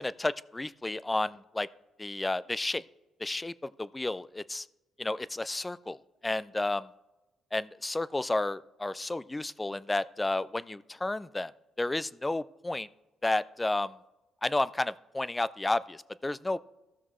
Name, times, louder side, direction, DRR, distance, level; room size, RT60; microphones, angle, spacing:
voice 1, 0.0-1.7 2.0-2.8 3.2-4.7 5.0-6.0 6.2-6.9 7.5-11.5 11.8-12.9 13.2-13.9 14.4-16.6, left 2 dB, 15° left, 17 dB, 0.3 m, -31 dB
15.0 x 6.2 x 3.1 m, 1.0 s
cardioid pair, 90°, 0 cm